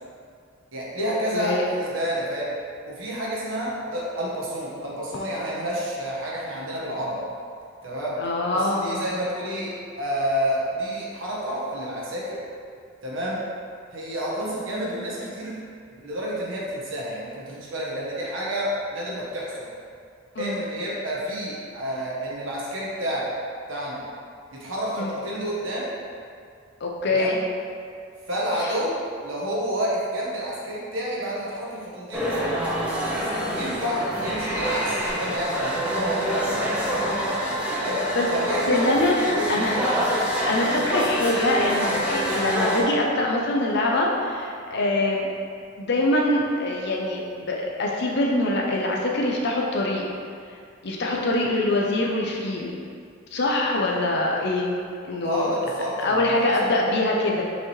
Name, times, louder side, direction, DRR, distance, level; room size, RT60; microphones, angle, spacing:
voice 1, 0.7-2.5 2.8-7.2 7.8-8.2 8.5-12.4 13.0-13.4 13.9-15.6 15.9-19.7 20.4-23.3 23.7-24.0 24.5-25.9 27.0-27.3 28.3-29.0 29.2-32.5 33.5-36.8 37.8-38.0 38.3-38.9 39.1-39.9 55.2-56.7, equal, 70° right, -5 dB, 1.4 m, -29 dB
voice 2, 1.3-1.7 8.2-9.0 20.4-20.6 25.0-25.1 26.8-27.4 28.6-28.7 38.1-38.3 38.7-39.7 40.5-45.3 45.8-50.0 50.8-52.7 53.3-54.7 55.1-55.5 56.0-57.4, left 2 dB, 55° left, -1 dB, 0.6 m, -24 dB
sound 1, 32.1-42.8, equal, 5° right, 1.0 m, -26 dB
6.1 x 5.0 x 3.2 m, 2.3 s
head